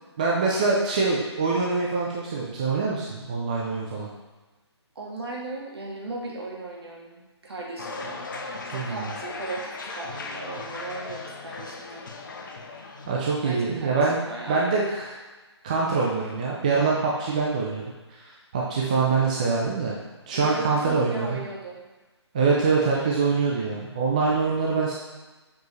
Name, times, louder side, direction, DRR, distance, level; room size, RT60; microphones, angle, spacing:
voice 1, 0.2-4.1 8.7-9.1 13.1-14.2 14.5-15.1 15.6-17.8 18.5-19.9 20.3-21.4 22.3-24.9, right 4 dB, 15° right, -4 dB, 0.5 m, -24 dB
voice 2, 5.0-8.2 8.7-9.7 10.0-12.0 13.4-14.7 18.8-19.3 20.3-21.8, right 3 dB, 60° right, -2 dB, 1.7 m, -37 dB
sound 1, 7.8-13.1, left 3 dB, 45° left, 0.7 m, -37 dB
7.0 x 4.6 x 3.2 m, 1.2 s
hypercardioid pair, 170°, 15 cm